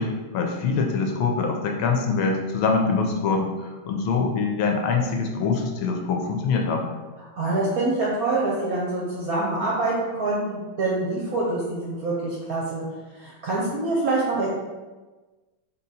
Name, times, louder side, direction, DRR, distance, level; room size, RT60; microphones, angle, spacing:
voice 1, 0.0-6.9, left 4 dB, 80° left, 2 dB, 1.5 m, -24 dB
voice 2, 7.3-12.8 13.1-14.5, right 2 dB, 65° right, -5 dB, 0.9 m, -25 dB
4.0 x 2.8 x 4.0 m, 1.2 s
omnidirectional pair, 2.3 m